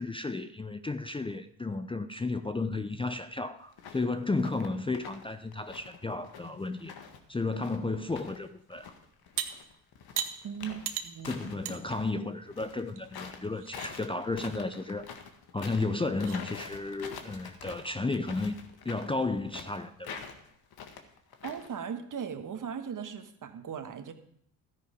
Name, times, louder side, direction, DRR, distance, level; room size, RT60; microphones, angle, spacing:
voice 1, 0.0-6.9 7.3-8.9 11.2-15.1 15.5-18.5 18.8-20.3, left 3 dB, 15° left, 0.6 m, -33 dB
sound 1, 3.7-4.0 4.3-5.2 5.5-8.4 8.7-12.1 12.5-21.8, left 6 dB, 60° left, 1.8 m, -46 dB
sound 2, 9.4-9.5 10.2-10.3 10.8-11.1 11.6-11.8 12.2-12.3 13.0-13.1 13.5-13.9 15.5-15.6 16.1-16.4, right 10 dB, 70° right, 1.3 m, -34 dB
voice 2, 10.4-11.8 21.4-24.1, right 7 dB, 45° right, 1.6 m, -38 dB
13.0 x 10.0 x 5.1 m
supercardioid pair, 65°, 42 cm